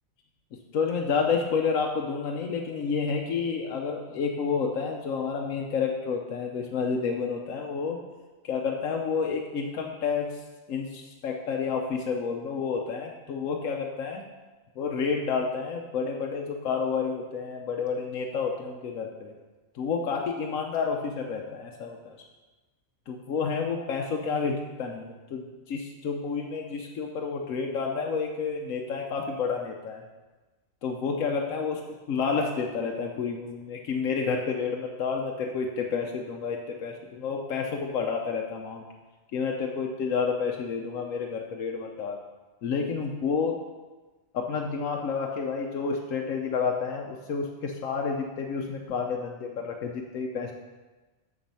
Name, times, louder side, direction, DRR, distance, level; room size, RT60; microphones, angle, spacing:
voice 1, 0.5-8.0 8.4-10.3 10.7-14.2 14.8-19.3 19.7-22.2 23.1-30.0 30.8-38.8 39.3-42.2 42.6-43.6 44.3-50.5, left 5 dB, 75° left, 1 dB, 1.2 m, -30 dB
7.4 x 7.0 x 5.5 m, 1.2 s
omnidirectional pair, 1.4 m